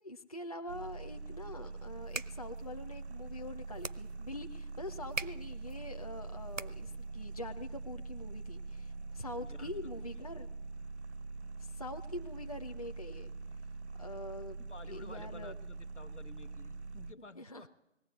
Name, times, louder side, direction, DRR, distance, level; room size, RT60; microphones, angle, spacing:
voice 1, 0.0-10.5 11.6-13.3 14.0-14.6 14.9-15.5 17.4-17.7, left 1 dB, 30° left, 4 dB, 0.6 m, -44 dB
sound 1, 0.7-17.1, right 3 dB, 65° right, 0.6 m, -44 dB
sound 2, 1.9-7.1, right 4 dB, 85° right, 0.9 m, -45 dB
voice 2, 9.4-10.2 14.6-17.7, left 3 dB, 70° left, 13 dB, 1.2 m, -52 dB
20.0 x 15.5 x 9.4 m, 0.92 s
figure-of-eight pair, 160°, 37 cm